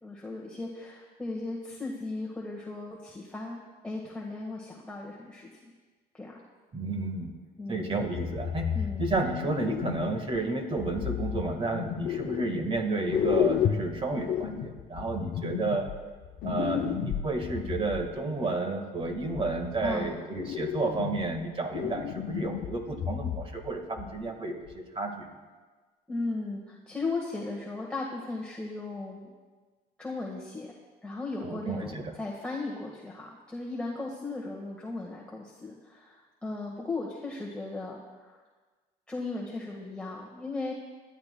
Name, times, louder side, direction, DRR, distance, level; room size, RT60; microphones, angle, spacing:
voice 1, 0.0-5.7 6.1-6.4 7.6-8.0 8.7-9.1 19.8-20.1 26.1-29.3 30.0-30.7 31.0-38.0 38.3-38.4 39.1-40.7, left 3 dB, 5° left, -4 dB, 1.6 m, -36 dB
voice 2, 6.7-7.3 7.7-8.7 9.0-15.9 16.4-25.3 31.4-32.1, right 3 dB, 30° right, 5 dB, 1.6 m, -31 dB
sound 1, 8.1-10.4 10.8-12.8 13.1-18.1 19.0-20.0 20.4-21.4 21.7-23.7 24.0-24.2 24.7-24.8, left 10 dB, 65° left, 0.7 m, -32 dB
21.5 x 12.0 x 2.3 m, 1.4 s
cardioid pair, 110°, 17 cm